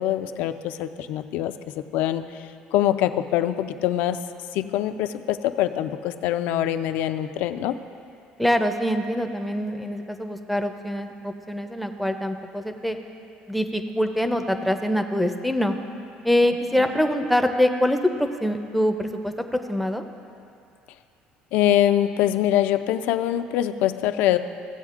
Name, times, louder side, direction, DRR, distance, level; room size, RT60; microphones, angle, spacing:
voice 1, 0.0-4.2 4.5-7.8 21.5-24.4, left 12 dB, 75° left, 10 dB, 0.4 m, -24 dB
voice 2, 8.4-13.0 13.5-15.8 16.2-20.0, left 1 dB, ahead, 6 dB, 0.4 m, -24 dB
16.5 x 7.8 x 2.5 m, 2.5 s
cardioid pair, 155°, 3 cm